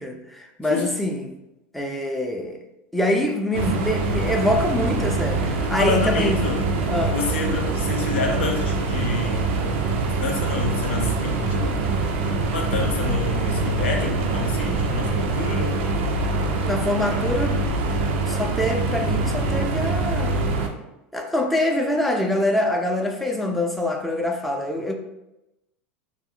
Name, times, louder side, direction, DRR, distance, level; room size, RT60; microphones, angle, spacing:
voice 1, 0.0-1.3 1.7-2.6 2.9-6.4 6.9-7.2 16.6-17.6 18.2-20.3 21.1-24.9, left 1 dB, ahead, 2 dB, 0.4 m, -24 dB
sound 1, 3.5-20.7, right 3 dB, 70° right, 0.4 m, -24 dB
voice 2, 5.8-6.6 7.1-9.7 10.1-12.1 12.5-15.8, left 3 dB, 90° left, 2 dB, 0.6 m, -28 dB
2.4 x 2.0 x 3.6 m, 0.92 s
hypercardioid pair, 105°, 6 cm